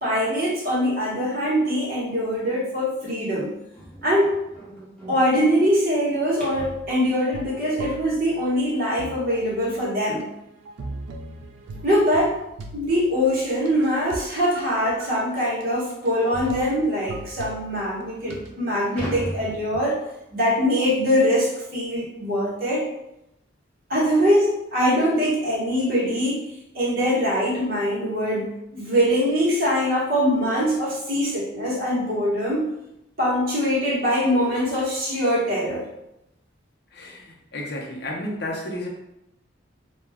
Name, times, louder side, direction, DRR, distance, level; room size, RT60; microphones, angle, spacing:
voice 1, 0.0-3.5 4.0-4.4 5.1-10.2 11.8-12.4 12.7-20.0 20.3-22.9 23.9-26.5 26.7-32.7 33.2-35.9, equal, 45° right, -6 dB, 0.9 m, -23 dB
sound 1, 3.7-6.8 9.6-9.7 10.2-10.4 10.8-10.9 11.3-11.4 12.5-12.7 13.1-13.2 13.9-14.0 14.3-14.4 14.9-15.0 16.4-16.7 17.5-17.6 18.0-20.3, right 1 dB, 5° left, 0.7 m, -38 dB
sound 2, 6.6-8.7 9.0-14.3 14.6-15.1 15.6-15.7 15.9-16.1 16.3-18.5, right 2 dB, 70° right, 0.3 m, -39 dB
voice 2, 36.9-38.9, left 1 dB, 55° left, -2 dB, 0.6 m, -32 dB
2.3 x 2.2 x 3.3 m, 0.85 s
head